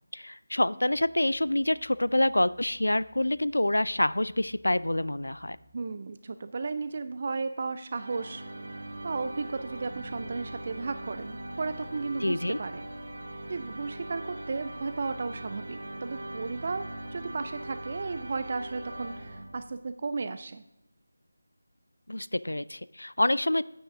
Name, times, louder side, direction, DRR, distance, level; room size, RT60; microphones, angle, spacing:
voice 1, 0.1-5.6 12.2-12.6 22.1-23.6, left 1 dB, 70° left, 18 dB, 0.3 m, -27 dB
sound 1, 0.9-6.0 6.6-6.7, left 1 dB, ahead, 1.0 m, -62 dB
voice 2, 5.7-8.4 9.0-12.9 13.5-20.6, right 4 dB, 35° right, 11 dB, 0.3 m, -34 dB
sound 2, 7.9-19.9, right 1 dB, 55° right, 1.4 m, -41 dB
9.1 x 7.7 x 3.5 m, 0.92 s
figure-of-eight pair, 160°, 0 cm